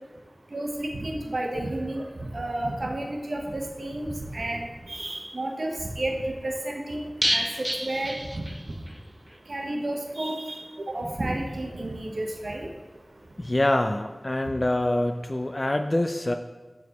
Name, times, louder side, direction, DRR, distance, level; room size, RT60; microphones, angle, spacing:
voice 1, 0.5-2.0 2.3-8.5 9.5-12.7, right 1 dB, 75° right, 1 dB, 0.9 m, -31 dB
sound 1, 7.2-9.0 9.3-9.4 9.7-9.8, equal, 10° right, 0.5 m, -29 dB
voice 2, 13.4-16.4, left 1 dB, 40° left, 6 dB, 0.3 m, -25 dB
6.8 x 6.5 x 4.1 m, 1.2 s
wide cardioid pair, 55°, 0 cm